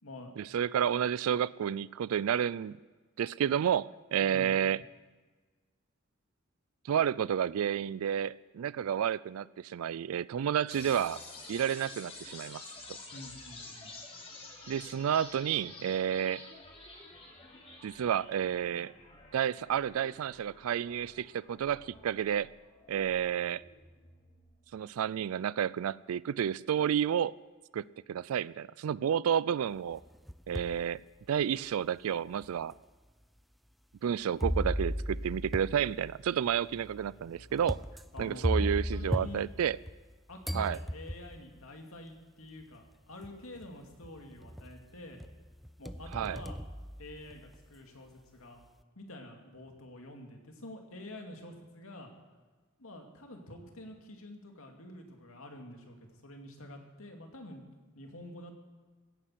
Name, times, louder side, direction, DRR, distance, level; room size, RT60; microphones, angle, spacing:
voice 1, 0.4-2.8 3.2-4.8 6.8-11.2 11.5-12.6 14.7-16.4 17.8-18.9 19.3-22.5 22.9-23.6 24.7-27.3 27.7-30.0 30.5-31.0 31.3-32.7 34.0-37.8 38.2-39.8 40.5-40.8 46.1-46.4, right 9 dB, 90° right, 21 dB, 0.3 m, -30 dB
voice 2, 4.2-4.6 13.1-13.9 38.1-39.5 40.3-45.2 45.8-46.6 47.0-48.6 49.0-52.1 52.8-56.0 56.2-57.6 57.9-58.5, left 1 dB, 80° left, 3 dB, 2.4 m, -47 dB
sound 1, 10.7-24.7, left 2 dB, 30° left, 2.9 m, -50 dB
sound 2, 29.9-30.8 31.4-31.5 32.4-32.5 34.4-40.1 40.4-41.5 42.6-42.7 43.2-43.7 44.0-44.8 45.2-47.6, equal, ahead, 0.5 m, -36 dB
16.5 x 9.9 x 7.6 m, 1.3 s
head